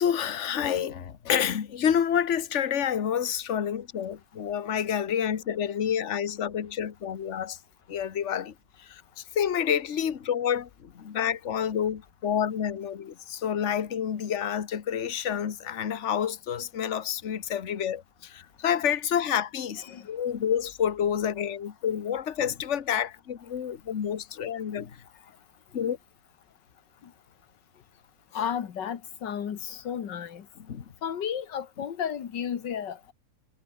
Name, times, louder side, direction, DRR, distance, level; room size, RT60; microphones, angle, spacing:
voice 1, 0.0-7.6 7.9-8.5 8.9-9.0 9.3-25.0 25.7-26.0 30.7-30.8, left 8 dB, 45° left, 1.5 m, -28 dB
voice 2, 28.3-30.4 31.0-33.1, left 8 dB, 90° left, 2.1 m, -33 dB
omnidirectional pair, 1.8 m